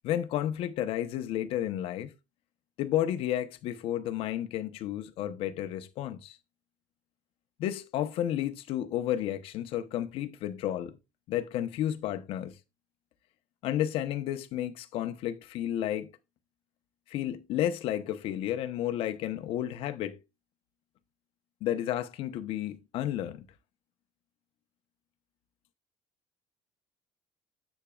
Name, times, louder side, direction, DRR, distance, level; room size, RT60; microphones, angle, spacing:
voice 1, 0.0-2.1 2.8-6.4 7.6-11.0 11.3-12.5 13.6-16.1 17.1-20.2 21.6-23.5, left 11 dB, 65° left, 1.0 m, -32 dB
10.0 x 8.3 x 2.4 m
cardioid pair, 145°, 10 cm